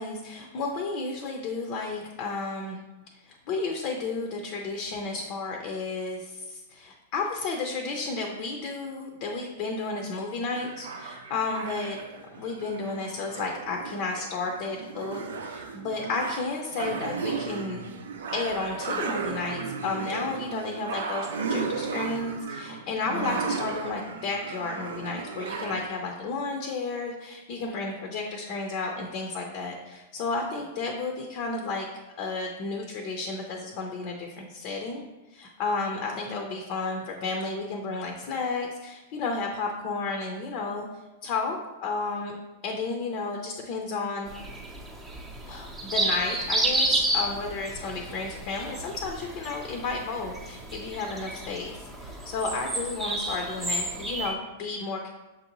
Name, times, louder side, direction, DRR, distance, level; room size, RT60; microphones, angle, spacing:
voice 1, 0.0-2.8 3.2-12.0 12.4-17.8 18.3-31.9 32.2-35.0 35.3-40.9 41.2-42.4 42.6-44.3 45.5-55.1, left 3 dB, 50° left, 1 dB, 0.6 m, -32 dB
sound 1, 10.5-25.8, right 5 dB, 80° right, 0.5 m, -35 dB
sound 2, 44.3-54.3, right 1 dB, 15° right, 0.6 m, -31 dB
6.3 x 2.7 x 2.9 m, 1.1 s
hypercardioid pair, 120°, 0 cm